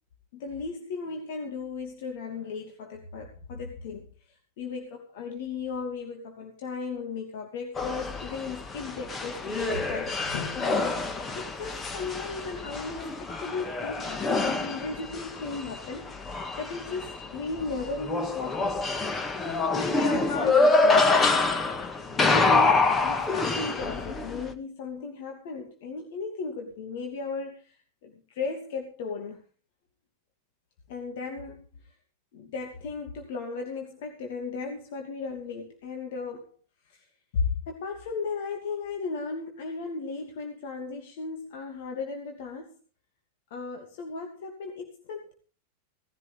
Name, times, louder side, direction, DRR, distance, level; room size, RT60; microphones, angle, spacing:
voice 1, 0.3-11.0 11.3-19.1 19.4-21.6 21.8-29.4 30.9-31.9 32.3-36.5 36.8-37.0 37.3-42.8 43.5-45.3, left 4 dB, 50° left, 3 dB, 2.7 m, -36 dB
sound 1, 7.7-24.5, left 3 dB, 20° left, 1.9 m, -26 dB
18.5 x 15.5 x 3.6 m, 0.38 s
figure-of-eight pair, 90°, 0 cm